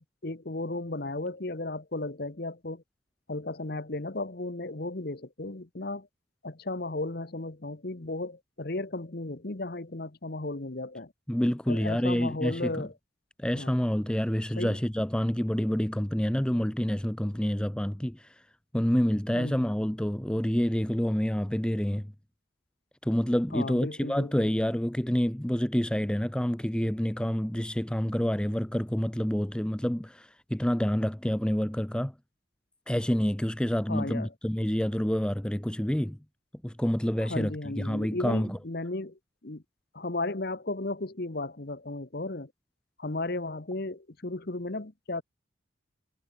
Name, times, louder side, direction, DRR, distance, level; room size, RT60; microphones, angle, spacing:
voice 1, 0.0-2.8 3.3-6.1 6.4-11.1 11.7-12.9 13.5-13.7 14.6-14.8 19.3-19.7 23.5-24.5 33.9-34.3 37.2-39.6 39.9-42.5 43.0-45.2, left 2 dB, 50° left, 1.2 m, -35 dB
voice 2, 11.3-12.8 13.4-18.3 18.7-22.1 23.0-32.1 32.9-36.2 36.6-38.6, equal, 5° left, 0.5 m, -28 dB
head